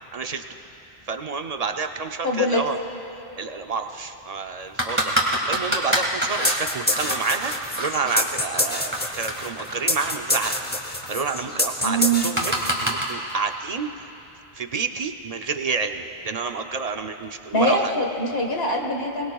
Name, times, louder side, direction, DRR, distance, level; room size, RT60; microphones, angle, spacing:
voice 1, 0.1-0.4 1.1-2.8 3.4-10.5 10.8-12.5 12.8-13.9 14.6-17.9, right 4 dB, 45° right, 6 dB, 0.6 m, -29 dB
voice 2, 2.2-2.6 11.8-12.3 17.5-19.3, right 1 dB, 70° left, 1 dB, 1.9 m, -23 dB
sound 1, 4.8-8.2 8.6-13.0, right 1 dB, 10° right, 1.8 m, -27 dB
sound 2, 6.4-13.1, left 1 dB, 10° left, 0.7 m, -26 dB
22.5 x 20.0 x 2.3 m, 3.0 s
omnidirectional pair, 1.1 m